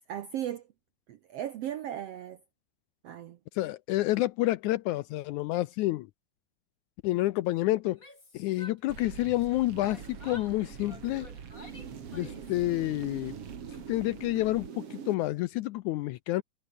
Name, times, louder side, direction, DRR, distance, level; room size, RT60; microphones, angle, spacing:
voice 1, 0.1-0.7 1.1-2.4 3.0-3.4, right 11 dB, 75° right, 1.4 m, -36 dB
voice 2, 3.5-6.1 7.0-8.0 8.3-11.3 12.1-13.3 13.9-16.4, left 17 dB, 80° left, 1.8 m, -29 dB
Yell, 7.8-9.5 9.8-12.6, left 2 dB, 20° left, 6.9 m, -51 dB
sound 1, 8.9-15.1, right 7 dB, 45° right, 2.9 m, -43 dB
omnidirectional pair, 3.9 m